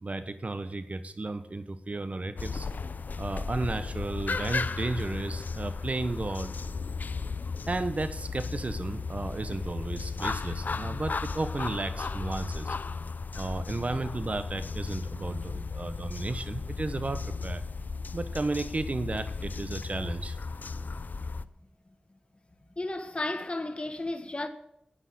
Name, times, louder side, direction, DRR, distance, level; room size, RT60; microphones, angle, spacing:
voice 1, 0.0-2.7 3.2-6.5 7.7-12.7 13.3-17.6 18.1-20.4, right 2 dB, 50° right, 1.1 m, -33 dB
sound 1, 2.4-21.4, left 4 dB, 70° left, 0.5 m, -35 dB
voice 2, 22.8-24.5, left 2 dB, 35° left, 1.5 m, -33 dB
10.0 x 9.9 x 8.4 m
wide cardioid pair, 65°, 3 cm